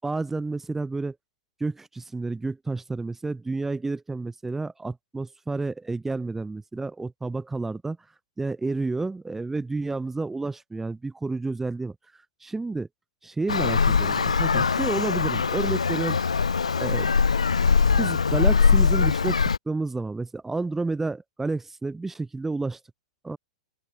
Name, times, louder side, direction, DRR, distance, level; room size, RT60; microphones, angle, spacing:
voice 1, 0.0-1.2 1.6-8.0 8.4-12.0 12.4-12.9 13.2-16.2 16.8-17.1 18.0-22.8 23.2-23.4, right 3 dB, 10° right, 7.3 m, -30 dB
Traffic noise roadway noise, 13.5-19.6, left 5 dB, 85° left, 0.6 m, -22 dB
open air
figure-of-eight pair, 105°, 3 cm